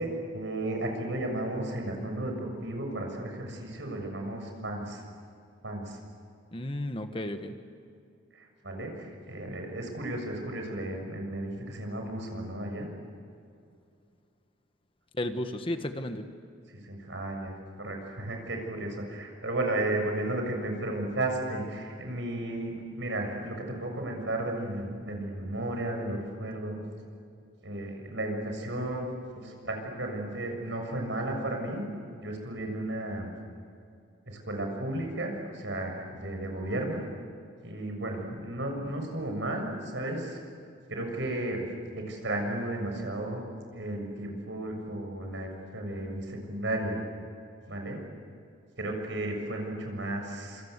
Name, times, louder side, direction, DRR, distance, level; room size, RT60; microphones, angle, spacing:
voice 1, 0.0-5.0 5.6-6.0 7.5-7.6 8.4-12.9 16.7-17.5 17.8-26.8 27.6-29.1 29.4-31.8 32.2-33.3 34.3-37.0 37.6-40.4 40.9-41.7 41.9-43.4 43.7-47.0 47.7-48.0 48.8-50.6, right 1 dB, 65° right, 3 dB, 6.9 m, -34 dB
voice 2, 6.5-7.6 15.2-16.3, left 1 dB, 25° left, 7 dB, 1.4 m, -33 dB
27.0 x 26.5 x 8.3 m, 2.4 s
head